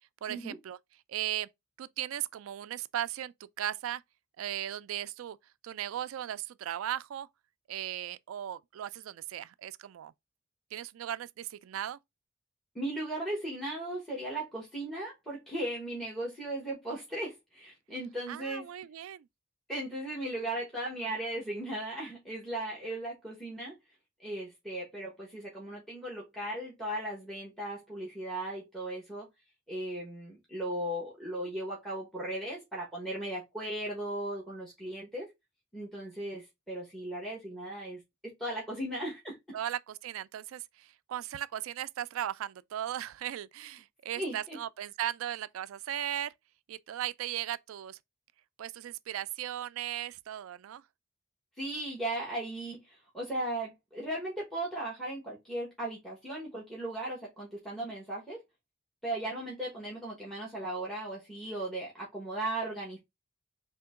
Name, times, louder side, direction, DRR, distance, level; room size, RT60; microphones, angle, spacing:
voice 1, 0.2-0.8 1.1-1.5 1.8-4.0 4.4-5.4 5.6-7.3 7.7-10.1 10.7-12.0 18.3-19.3 39.5-46.3 46.7-48.0 48.6-50.8, right 11 dB, 90° right, 0.3 m, -37 dB
voice 2, 12.7-18.7 19.7-23.8 24.2-29.3 29.7-35.3 35.7-39.6 44.2-44.6 51.6-58.4 59.0-63.0, right 1 dB, ahead, 1.2 m, -37 dB
3.7 x 2.8 x 3.5 m
head